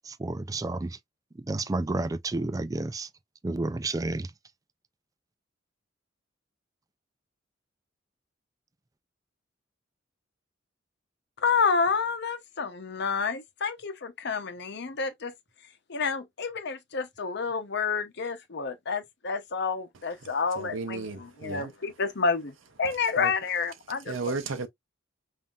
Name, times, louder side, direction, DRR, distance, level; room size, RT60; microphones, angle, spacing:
voice 1, 0.0-1.0 1.5-3.1 3.4-4.3, right 2 dB, 20° right, 0.4 m, -30 dB
voice 2, 11.4-15.3 15.9-21.1 21.4-22.5 22.8-24.3, left 5 dB, 60° left, 0.8 m, -29 dB
voice 3, 20.2-21.7 23.2-23.3 24.0-24.7, right 4 dB, 90° right, 0.6 m, -34 dB
5.4 x 2.7 x 2.4 m
head